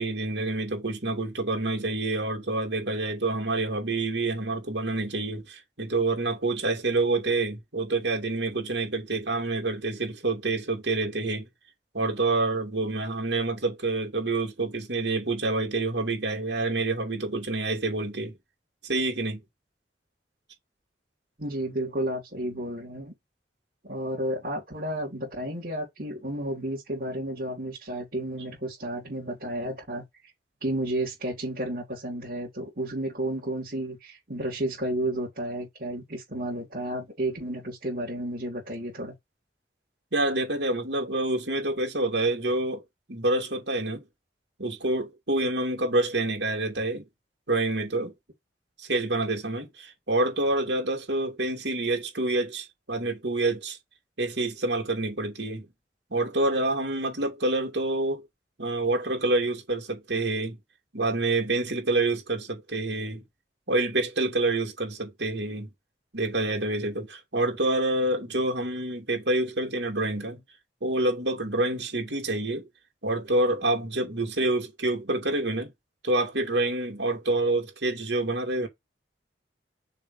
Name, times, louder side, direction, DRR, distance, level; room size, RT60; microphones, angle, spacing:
voice 1, 0.0-11.5 11.9-18.3 18.8-19.4 40.1-42.8 43.1-44.1 44.6-47.0 47.5-48.1 48.8-53.8 54.2-55.7 56.1-58.3 58.6-60.6 60.9-63.2 63.7-65.7 66.1-70.4 70.8-72.7 73.0-75.7 76.0-78.7, right 2 dB, 80° right, 2.5 m, -27 dB
voice 2, 21.4-23.1 23.8-30.0 30.6-39.1, right 1 dB, 50° right, 2.9 m, -32 dB
6.6 x 3.0 x 5.4 m
head